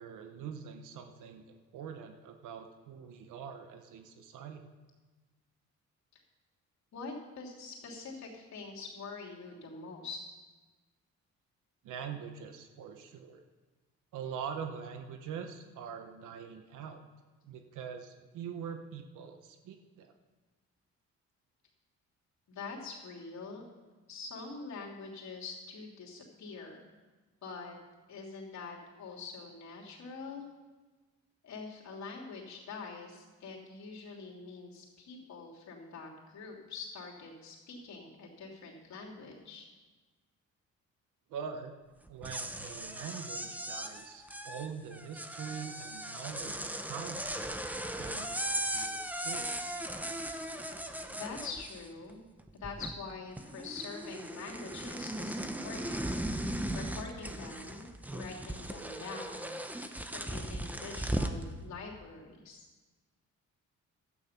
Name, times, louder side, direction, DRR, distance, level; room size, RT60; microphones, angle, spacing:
voice 1, 0.0-4.6 11.8-13.4 14.1-17.0 17.4-20.1 41.3-41.7 42.1-47.6 47.9-49.5, right 7 dB, 85° right, 6 dB, 1.0 m, -44 dB
voice 2, 6.9-10.2 22.5-23.6 24.1-26.9 27.4-27.7 28.1-30.4 31.4-39.7 51.1-52.2 52.5-56.1 56.4-59.6 60.0-62.7, left 4 dB, 65° left, -2 dB, 2.9 m, -45 dB
sound 1, 42.1-52.1 52.4-53.1 53.4-61.4, right 1 dB, 5° right, 0.8 m, -38 dB
12.5 x 8.9 x 5.8 m, 1.3 s
cardioid pair, 90°, 30 cm